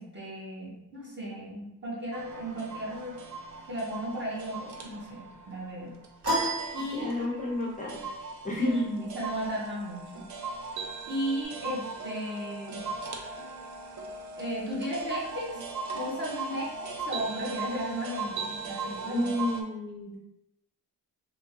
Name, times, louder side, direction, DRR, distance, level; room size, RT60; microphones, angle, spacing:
voice 1, 0.0-3.2 3.7-6.0 6.7-7.1 8.6-10.3 11.1-12.9 14.4-15.7 15.9-19.3, equal, 30° right, -6 dB, 1.1 m, -35 dB
sound 1, 2.1-19.6, right 3 dB, 55° right, 0.5 m, -39 dB
sound 2, 6.2-7.6, right 1 dB, 80° right, 1.4 m, -31 dB
voice 2, 6.9-8.1 8.4-8.8 19.1-20.2, left 2 dB, 20° left, -4 dB, 0.5 m, -31 dB
3.5 x 2.7 x 3.0 m, 0.87 s
wide cardioid pair, 165°, 37 cm